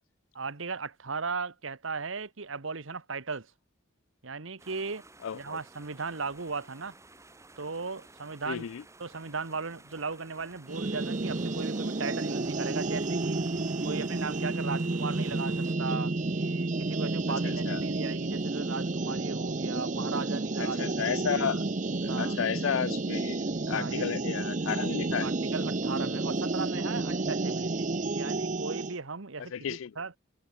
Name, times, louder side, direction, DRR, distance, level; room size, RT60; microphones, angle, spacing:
voice 1, 0.3-3.5 4.2-5.0 5.3-6.9 7.6-8.6 9.0-13.4 13.8-20.8 22.1-22.4 23.7-24.1 25.2-30.1, right 4 dB, 80° right, 1.3 m, -37 dB
sound 1, 4.6-15.8, right 2 dB, 15° right, 4.3 m, -54 dB
voice 2, 5.2-5.6 8.5-8.8 17.4-17.8 20.6-21.6 22.0-25.3 29.4-30.0, left 8 dB, 80° left, 0.4 m, -33 dB
sound 2, 10.7-29.0, right 2 dB, 40° right, 0.7 m, -31 dB
head